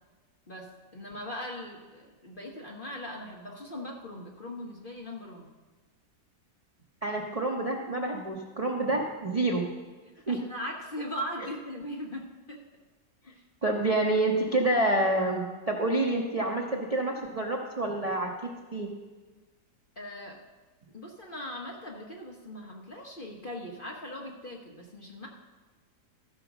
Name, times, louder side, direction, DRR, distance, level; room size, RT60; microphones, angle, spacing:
voice 1, 0.9-5.5 10.3-12.6 13.3-13.4 20.0-20.4 20.9-25.3, equal, 40° left, -1 dB, 0.9 m, -39 dB
voice 2, 7.0-9.6 10.3-10.4 13.6-18.3 18.7-18.9, right 2 dB, 35° right, -1 dB, 0.6 m, -28 dB
13.5 x 5.2 x 6.0 m, 1.3 s
omnidirectional pair, 1.9 m